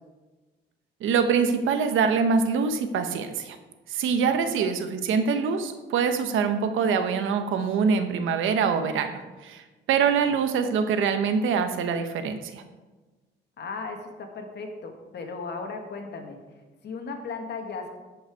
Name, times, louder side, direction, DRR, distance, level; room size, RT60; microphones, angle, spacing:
voice 1, 1.0-3.6 3.9-9.6 9.9-12.6, right 6 dB, 80° right, 8 dB, 1.0 m, -24 dB
voice 2, 13.6-16.4 16.8-17.9, left 4 dB, 60° left, 4 dB, 1.7 m, -36 dB
13.0 x 5.6 x 4.6 m, 1.2 s
cardioid pair, 90°, 20 cm